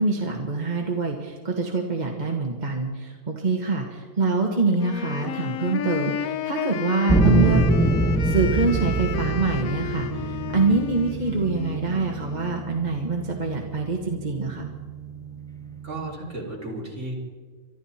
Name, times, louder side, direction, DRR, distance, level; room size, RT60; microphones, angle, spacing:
voice 1, 0.0-7.6 8.2-14.7, right 3 dB, 30° right, 1 dB, 1.6 m, -25 dB
Wind instrument woodwind instrument, 4.7-12.6, left 9 dB, 75° left, 1.1 m, -33 dB
sound 1, 7.1-16.1, right 2 dB, 5° left, 1.0 m, -25 dB
voice 2, 15.8-17.1, right 2 dB, 55° right, -3 dB, 3.8 m, -33 dB
24.5 x 13.5 x 4.4 m, 1.5 s
omnidirectional pair, 1.5 m